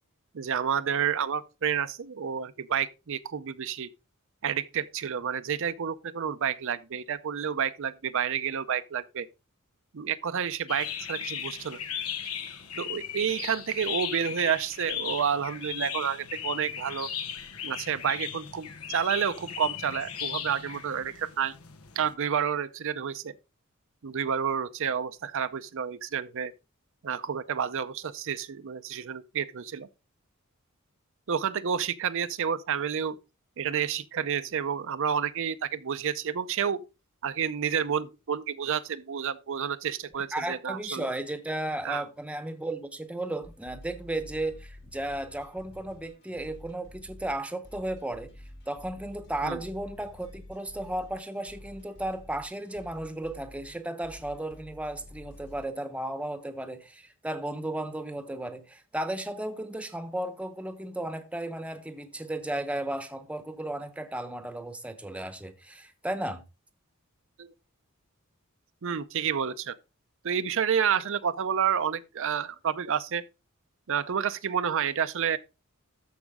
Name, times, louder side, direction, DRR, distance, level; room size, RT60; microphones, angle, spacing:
voice 1, 0.3-3.9 4.4-9.3 9.9-11.8 12.2-12.3 12.8-17.1 17.6-21.5 22.0-23.3 24.0-26.5 27.0-29.9 31.3-33.2 33.6-36.8 37.2-41.1 41.8-42.0 49.4-49.6 67.4-67.5 68.8-69.8 70.2-73.2 73.9-75.4, right 7 dB, 65° right, 0.6 m, -30 dB
sound 1, 10.7-22.1, left 9 dB, 90° left, 1.1 m, -37 dB
voice 2, 40.3-48.3 48.7-66.4, right 1 dB, 5° right, 0.8 m, -34 dB
sound 2, 43.4-55.6, left 1 dB, 55° left, 2.2 m, -49 dB
13.5 x 5.0 x 3.5 m
head